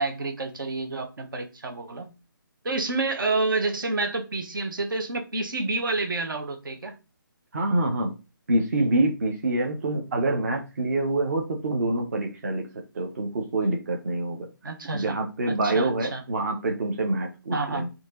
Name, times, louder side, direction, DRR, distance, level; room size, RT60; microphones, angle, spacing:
voice 1, 0.0-2.1 2.6-7.0 14.6-15.2 15.5-16.2 17.5-17.8, right 3 dB, 65° right, 1.5 m, -29 dB
voice 2, 7.5-8.1 8.5-12.7 12.9-14.4 14.9-17.9, right 2 dB, 45° right, 1.3 m, -26 dB
8.3 x 3.1 x 3.9 m
hypercardioid pair, 170°, 12 cm